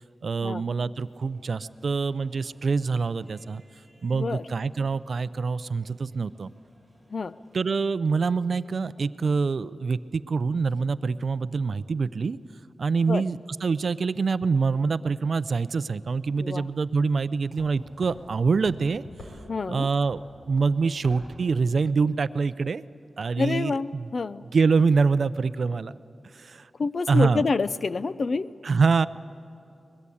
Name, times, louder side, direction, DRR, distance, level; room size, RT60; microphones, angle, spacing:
voice 1, 0.2-3.6 4.0-6.5 7.5-12.4 12.8-19.0 19.7-22.8 23.2-24.1 24.5-25.9 26.4-26.6 27.1-27.4 28.6-29.1, right 4 dB, 55° right, 16 dB, 0.4 m, -25 dB
sound 1, 1.0-7.8, equal, 10° left, 5.9 m, -62 dB
voice 2, 4.1-4.5 7.1-7.3 13.1-13.2 16.4-16.7 19.5-19.9 23.4-24.4 26.8-28.5, left 4 dB, 45° left, 16 dB, 0.5 m, -27 dB
sound 2, 16.6-21.8, left 1 dB, 70° left, 5.8 m, -49 dB
22.5 x 20.5 x 8.5 m, 2.7 s
wide cardioid pair, 135°, 0 cm